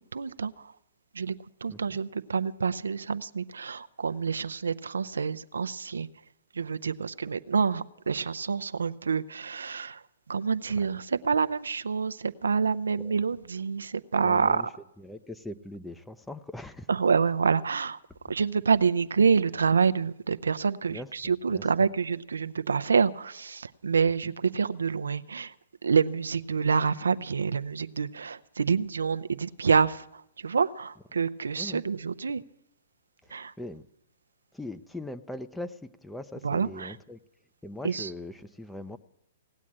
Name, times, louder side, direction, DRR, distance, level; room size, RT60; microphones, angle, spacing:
voice 1, 0.1-0.7 1.1-1.3 1.6-6.1 6.5-10.0 10.3-14.6 16.9-18.0 18.3-25.5 25.8-32.4 33.3-33.5 36.4-37.0 37.8-38.1, right 5 dB, 85° right, 12 dB, 0.6 m, -27 dB
voice 2, 14.2-14.7 15.0-16.9 20.9-21.6 24.2-24.3 31.6-31.8 33.2-33.9 34.5-37.2 37.6-39.0, left 1 dB, 5° left, 11 dB, 0.6 m, -41 dB
18.0 x 8.3 x 8.7 m, 0.77 s
hypercardioid pair, 125°, 0 cm